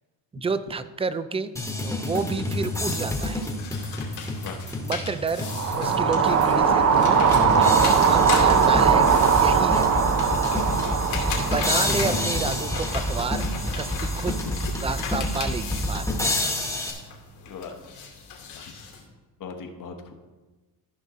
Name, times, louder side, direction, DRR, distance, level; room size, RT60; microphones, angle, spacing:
voice 1, 0.3-1.5 1.8-3.4 4.8-5.5 5.7-7.1 7.6-9.1 9.3-10.0 11.3-13.4 13.8-14.5 14.8-16.1, right 4 dB, 15° right, 12 dB, 0.3 m, -30 dB
sound 1, 1.6-6.0 6.4-6.5 7.3-16.9, left 1 dB, 5° left, 1.3 m, -28 dB
sound 2, 3.4-19.0, left 5 dB, 80° left, 2.6 m, -36 dB
sound 3, 5.5-13.7, right 6 dB, 40° right, 0.7 m, -21 dB
voice 2, 19.4-20.1, left 6 dB, 50° left, 5 dB, 1.2 m, -38 dB
14.0 x 5.5 x 3.7 m, 1.2 s
cardioid pair, 120°, 40 cm